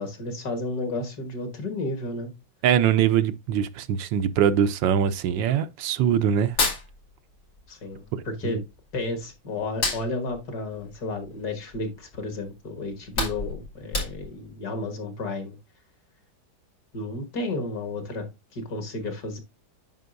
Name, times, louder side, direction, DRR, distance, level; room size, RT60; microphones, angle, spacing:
voice 1, 0.0-2.3 7.7-8.6 8.9-15.6 16.9-18.3 18.5-19.4, left 2 dB, 55° left, 1.9 m, -32 dB
voice 2, 2.6-6.6 8.4-8.6, right 9 dB, 75° right, 1.2 m, -22 dB
Hands, 6.4-7.7 7.9-9.2 9.6-12.0 12.4-12.5 12.9-14.5, left 3 dB, 80° left, 3.4 m, -30 dB
9.1 x 5.9 x 2.6 m
omnidirectional pair, 2.1 m